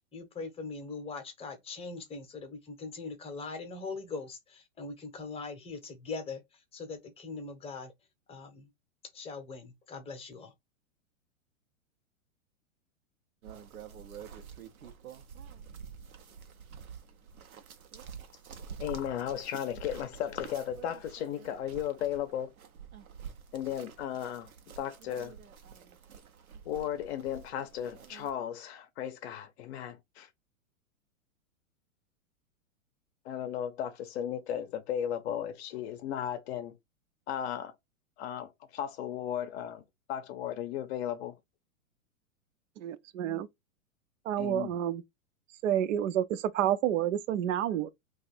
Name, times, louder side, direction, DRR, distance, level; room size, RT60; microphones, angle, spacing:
voice 1, 0.1-6.4 6.7-7.9 8.3-8.7 9.1-10.5, left 4 dB, 15° left, 0.7 m, -41 dB
sound 1, 13.4-28.3, right 7 dB, 90° right, 0.8 m, -48 dB
voice 2, 18.8-22.5 23.5-24.5 24.8-25.4 26.7-30.3 33.2-36.8 37.3-37.7 38.2-39.8 40.1-41.3 44.4-44.7, left 10 dB, 50° left, 0.6 m, -35 dB
voice 3, 42.8-43.5 44.3-45.0 45.6-47.9, right 11 dB, 60° right, 0.6 m, -29 dB
2.6 x 2.4 x 4.1 m
hypercardioid pair, 120°, 42 cm